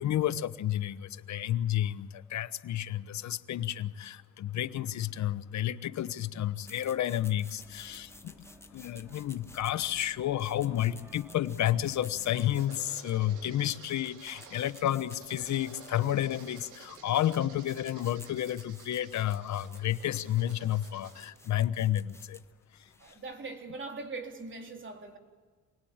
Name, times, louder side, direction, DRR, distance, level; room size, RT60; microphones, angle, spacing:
voice 1, 0.0-8.3 8.7-22.4, left 12 dB, 65° left, 13 dB, 1.1 m, -31 dB
sound 1, 6.6-23.3, left 2 dB, 10° left, 1.3 m, -55 dB
Bus, 7.6-12.6, equal, 10° right, 2.5 m, -56 dB
sound 2, 11.7-21.3, right 5 dB, 85° right, 3.5 m, -53 dB
voice 2, 23.0-25.2, right 3 dB, 40° right, 3 dB, 3.8 m, -41 dB
28.0 x 19.5 x 8.9 m, 1.4 s
cardioid pair, 90°, 30 cm